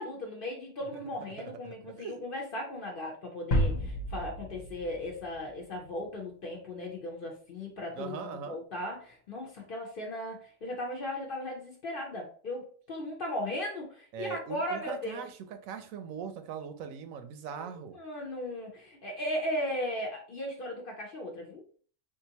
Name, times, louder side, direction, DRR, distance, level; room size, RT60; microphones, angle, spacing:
voice 1, 0.0-15.2 17.5-17.7 17.9-21.8, left 1 dB, 50° left, 0 dB, 0.8 m, -37 dB
voice 2, 1.6-2.2 8.0-8.6 14.1-18.0, right 7 dB, 85° right, 8 dB, 1.0 m, -40 dB
sound 1, 3.5-6.0, equal, 80° left, 1.1 m, -31 dB
3.7 x 2.5 x 2.8 m, 0.43 s
omnidirectional pair, 1.4 m